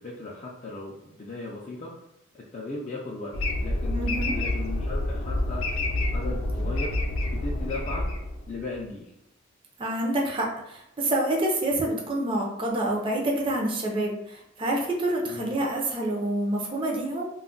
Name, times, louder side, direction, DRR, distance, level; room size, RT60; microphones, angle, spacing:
voice 1, 0.0-1.9 2.3-3.3 3.6-5.7 6.1-8.1 8.5-9.1 15.2-15.5, left 3 dB, 35° left, -5 dB, 0.4 m, -37 dB
sound 1, 3.3-8.7, left 1 dB, 90° left, 0.5 m, -28 dB
voice 2, 3.9-4.4 9.8-17.3, right 1 dB, 25° right, -2 dB, 0.5 m, -27 dB
2.3 x 2.1 x 3.7 m, 0.79 s
head